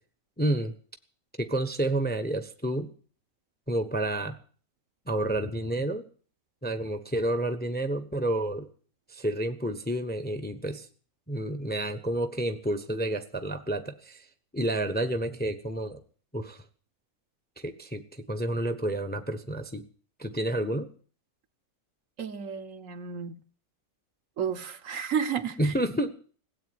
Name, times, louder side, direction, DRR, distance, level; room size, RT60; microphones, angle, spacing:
voice 1, 0.4-0.7 1.4-2.9 3.7-4.4 5.1-6.0 6.6-8.7 9.1-10.9 11.3-14.2 14.5-16.0 16.3-16.6 17.6-19.8 20.2-20.9 25.6-26.1, right 1 dB, 10° left, 0.8 m, -30 dB
voice 2, 22.2-23.4 24.4-25.7, right 7 dB, 60° right, 1.3 m, -32 dB
16.5 x 8.5 x 9.4 m
omnidirectional pair, 1.6 m